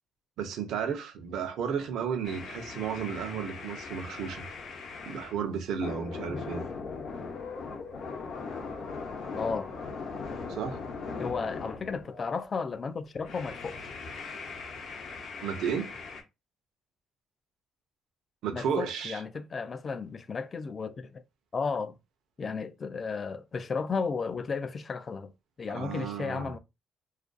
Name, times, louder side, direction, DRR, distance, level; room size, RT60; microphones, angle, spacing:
voice 1, 0.4-4.4 5.1-6.6 10.5-10.8 15.4-15.9 18.4-19.2 25.7-26.5, right 7 dB, 75° right, 0.5 m, -33 dB
sound 1, 2.2-5.4 5.8-12.5 13.2-16.2, left 4 dB, 65° left, 0.7 m, -39 dB
voice 2, 9.4-9.7 11.2-13.9 18.5-21.2 21.5-22.0 22.4-25.3 25.6-26.6, left 5 dB, 35° left, 0.3 m, -34 dB
2.4 x 2.2 x 2.4 m
cardioid pair, 95°, 0 cm